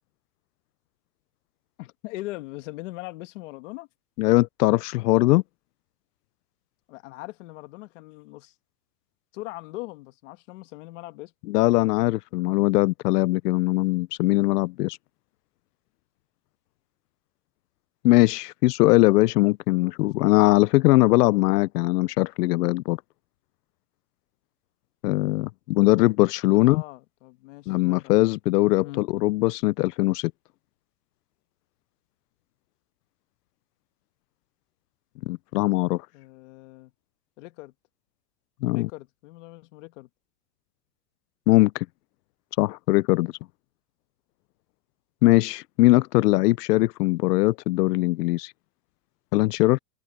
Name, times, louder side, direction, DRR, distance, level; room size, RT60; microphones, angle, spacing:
voice 1, 1.8-3.9 6.9-8.6 9.3-11.3 19.8-20.1 26.5-28.1 28.8-29.1 36.1-36.9 37.4-37.7 38.7-40.1, left 19 dB, 50° left, 1.5 m, -40 dB
voice 2, 4.2-5.4 11.5-15.0 18.0-23.0 25.0-26.8 27.7-30.3 35.3-36.1 38.6-38.9 41.5-41.9 42.6-43.3 45.2-48.5 49.3-49.8, left 20 dB, 80° left, 0.6 m, -21 dB
open air
supercardioid pair, 165°, 46 cm